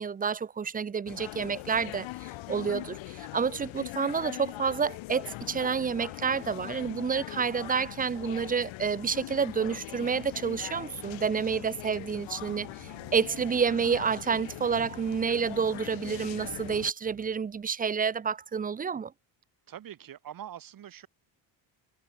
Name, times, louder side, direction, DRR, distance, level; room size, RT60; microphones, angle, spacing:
voice 1, 0.0-19.1, right 6 dB, 20° right, 0.5 m, -29 dB
sound 1, 1.1-16.9, left 19 dB, 70° left, 1.2 m, -41 dB
sound 2, 11.1-11.7 12.0-12.1 12.4-17.7, right 18 dB, 75° right, 3.0 m, -55 dB
voice 2, 19.7-21.1, right 10 dB, 45° right, 2.0 m, -44 dB
cardioid pair, 115°, 47 cm